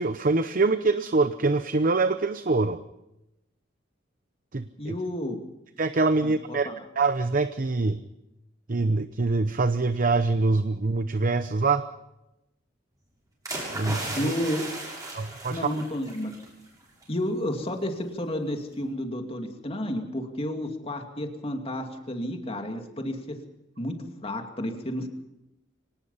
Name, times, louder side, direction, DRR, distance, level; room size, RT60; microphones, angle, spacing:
voice 1, 0.0-2.8 4.5-5.0 5.8-6.7 7.0-8.0 8.7-11.8 13.7-14.3 15.1-15.7, right 3 dB, 45° right, 11 dB, 0.8 m, -24 dB
voice 2, 4.8-5.4 6.2-6.7 14.1-14.7 15.5-16.5 17.1-23.4 23.8-25.1, left 1 dB, 30° left, 4 dB, 2.5 m, -31 dB
sound 1, 13.5-16.5 16.8-17.0, right 2 dB, 20° right, 7.1 m, -35 dB
24.5 x 19.0 x 5.7 m, 0.90 s
head